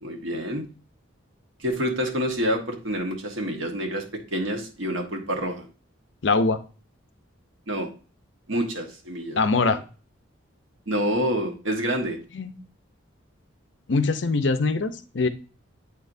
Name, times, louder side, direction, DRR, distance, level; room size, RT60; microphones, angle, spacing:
voice 1, 0.0-0.7 1.6-4.1 4.3-5.7 7.7-7.9 8.5-9.4 9.6-9.8 10.9-12.2, equal, 75° right, 3 dB, 1.3 m, -27 dB
voice 2, 6.2-6.6 9.4-9.8 12.3-12.6 13.9-15.3, left 3 dB, 60° left, 10 dB, 0.6 m, -22 dB
8.3 x 4.5 x 2.6 m, 0.35 s
head